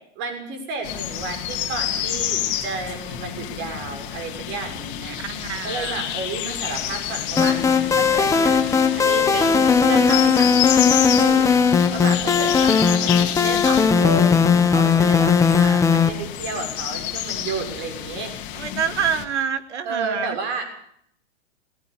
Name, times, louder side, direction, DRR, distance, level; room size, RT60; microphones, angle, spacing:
voice 1, 0.1-5.2 5.5-18.3 19.8-20.7, right 3 dB, 35° right, 6 dB, 6.7 m, -32 dB
sound 1, 0.8-19.3, left 11 dB, 30° left, 3.7 m, -29 dB
voice 2, 5.2-6.0 12.3-12.4 18.6-20.4, right 7 dB, 80° right, 11 dB, 2.4 m, -27 dB
sound 2, 7.4-16.1, left 6 dB, 10° left, 1.4 m, -18 dB
19.0 x 17.0 x 8.5 m, 0.68 s
hypercardioid pair, 140°, 34 cm